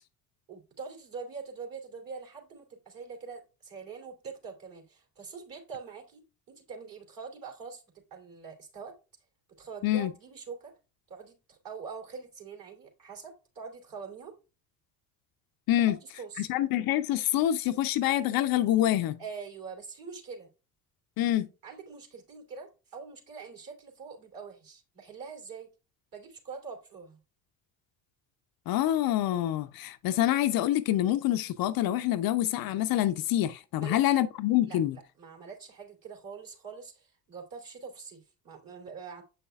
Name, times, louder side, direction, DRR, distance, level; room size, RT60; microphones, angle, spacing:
voice 1, 0.5-8.9 9.6-10.7 11.1-14.3 15.8-16.5 19.2-20.5 21.3-25.7 26.1-27.2 33.8-34.0 34.6-39.2, right 5 dB, 40° right, 3.0 m, -44 dB
voice 2, 16.4-19.2 21.2-21.5 28.7-35.0, left 13 dB, 45° left, 0.6 m, -26 dB
8.0 x 5.7 x 2.3 m
hypercardioid pair, 60°, 49 cm